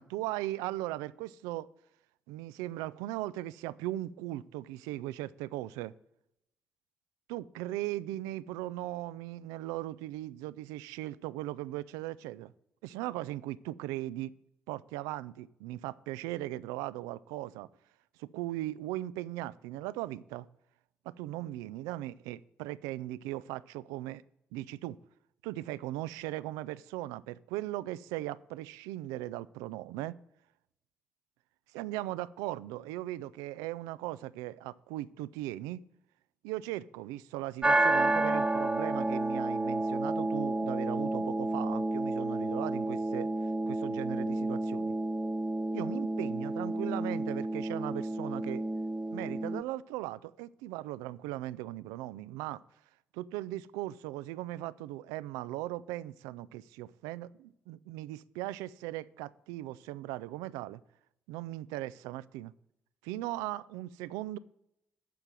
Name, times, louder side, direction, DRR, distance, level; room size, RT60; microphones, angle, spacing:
voice 1, 0.0-1.7 2.3-5.9 7.3-12.5 12.8-14.3 14.7-17.7 18.2-20.5 21.1-24.2 24.5-25.0 25.4-30.1 31.7-35.8 36.4-43.3 43.6-44.9 45.7-48.6 49.1-52.6 53.1-60.8 61.3-62.5 63.0-64.4, right 15 dB, 85° right, 0.4 m, -38 dB
sound 1, 37.6-49.6, right 2 dB, 15° right, 0.6 m, -31 dB
12.0 x 4.7 x 7.4 m
hypercardioid pair, 50°, 6 cm